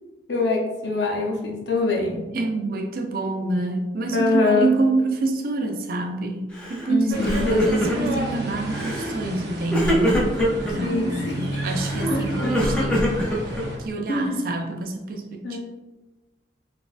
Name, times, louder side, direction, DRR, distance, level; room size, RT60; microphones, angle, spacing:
voice 1, 0.3-2.2 4.1-4.7 6.9-7.6 10.8-11.5 12.1-12.6 14.1-14.4 15.4-15.6, left 3 dB, 70° left, -1 dB, 0.7 m, -24 dB
voice 2, 2.1-10.2 10.7-13.4 13.8-15.6, right 3 dB, 50° right, 3 dB, 0.4 m, -27 dB
Crying sobbing, 6.6-6.9 7.1-8.2 8.7-9.1 9.7-10.7 11.6-13.9, equal, 5° left, 0.5 m, -24 dB
sound 1, 7.1-13.8, right 1 dB, 70° right, 0.8 m, -31 dB
4.1 x 2.5 x 2.4 m, 1.1 s
head